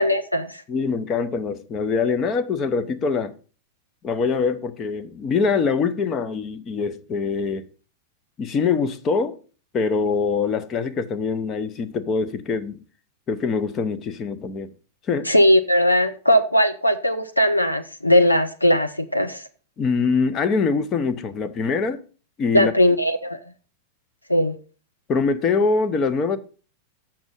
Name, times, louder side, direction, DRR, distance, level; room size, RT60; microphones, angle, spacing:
voice 1, 0.0-0.6 15.3-19.4 22.5-23.4 24.3-24.6, equal, 85° left, 0.5 m, -19 dB
voice 2, 0.7-3.3 4.0-7.7 8.4-9.4 9.7-12.8 13.3-14.7 15.1-15.3 19.8-22.0 22.4-22.7 25.1-26.4, left 5 dB, 30° left, 0.8 m, -23 dB
7.4 x 6.2 x 5.4 m
figure-of-eight pair, 90°, 0 cm